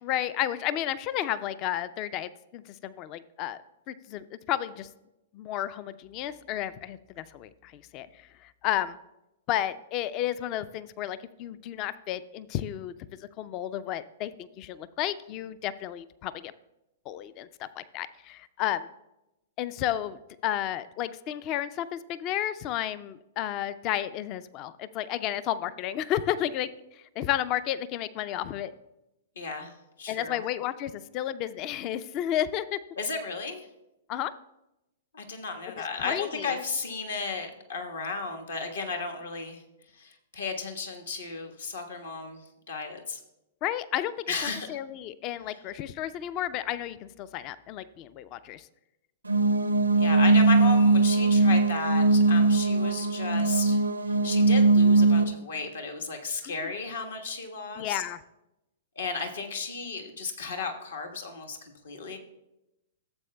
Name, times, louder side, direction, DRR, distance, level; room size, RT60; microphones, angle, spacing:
voice 1, 0.0-3.6 3.9-4.9 5.3-9.0 9.5-12.9 13.4-16.5 17.1-18.9 19.6-28.7 30.1-32.8 34.1-34.3 35.7-36.6 43.6-48.7 56.4-56.8 57.8-58.2, left 12 dB, 35° left, 15 dB, 0.4 m, -32 dB
voice 2, 29.4-29.7 30.0-30.4 33.0-33.7 35.1-39.6 39.9-43.2 44.3-44.7 50.0-53.8 54.1-58.0 59.0-62.2, left 4 dB, 70° left, 3 dB, 1.3 m, -34 dB
sound 1, 49.3-55.2, right 3 dB, 85° right, 0.5 m, -21 dB
14.0 x 7.7 x 2.2 m, 0.91 s
figure-of-eight pair, 110°, 0 cm